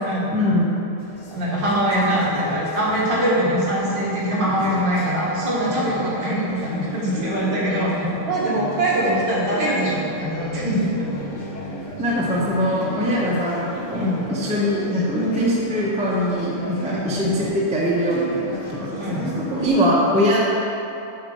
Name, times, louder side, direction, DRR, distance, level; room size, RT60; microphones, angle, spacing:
voice 1, 0.3-0.7 12.0-20.4, equal, 5° right, -6 dB, 0.8 m, -22 dB
sound 1, 1.0-19.7, equal, 40° left, 1.3 m, -34 dB
voice 2, 1.3-8.0 8.3-11.1 13.9-14.2 16.8-17.1 19.0-19.3, right 1 dB, 55° right, -7 dB, 2.5 m, -22 dB
8.2 x 4.6 x 6.5 m, 2.8 s
omnidirectional pair, 2.4 m